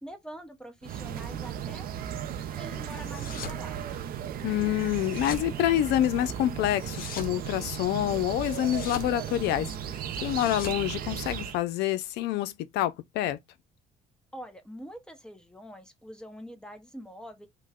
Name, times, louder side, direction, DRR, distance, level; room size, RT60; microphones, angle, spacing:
voice 1, 0.0-1.8 2.5-3.8 14.3-17.5, equal, 5° left, 0.8 m, -44 dB
sound 1, 0.8-11.6, right 9 dB, 60° right, 0.5 m, -36 dB
sound 2, 2.9-3.6 4.8-5.5 6.7-7.4 8.4-9.2 10.1-11.6, left 6 dB, 60° left, 0.8 m, -42 dB
voice 2, 4.4-9.7 10.2-13.4, left 13 dB, 85° left, 0.5 m, -27 dB
3.0 x 2.1 x 3.5 m
cardioid pair, 110°, 17 cm